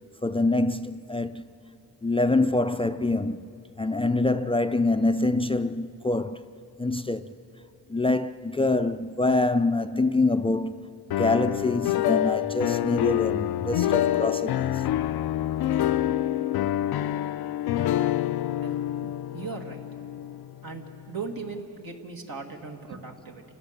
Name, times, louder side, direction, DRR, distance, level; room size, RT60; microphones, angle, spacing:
voice 1, 0.2-1.4 2.0-3.4 3.8-6.4 6.8-7.3 7.9-10.7 11.1-14.8, left 2 dB, 15° left, 0.4 m, -25 dB
sound 1, 11.1-21.0, left 12 dB, 85° left, 0.5 m, -27 dB
voice 2, 19.3-19.9 20.6-23.4, right 4 dB, 70° right, 2.3 m, -38 dB
29.0 x 16.0 x 6.7 m
cardioid pair, 95°, 37 cm